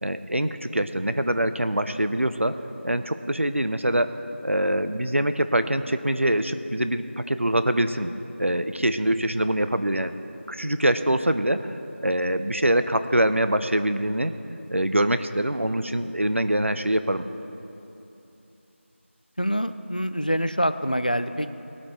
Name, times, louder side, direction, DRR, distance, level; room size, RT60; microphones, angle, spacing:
voice 1, 0.0-2.6 2.8-4.2 4.4-8.1 8.4-10.1 10.5-11.7 12.0-14.3 14.7-17.2, right 1 dB, 70° right, 10 dB, 0.7 m, -24 dB
voice 2, 19.4-21.5, equal, 40° left, 12 dB, 0.4 m, -25 dB
19.0 x 8.8 x 4.7 m, 2.9 s
figure-of-eight pair, 180°, 7 cm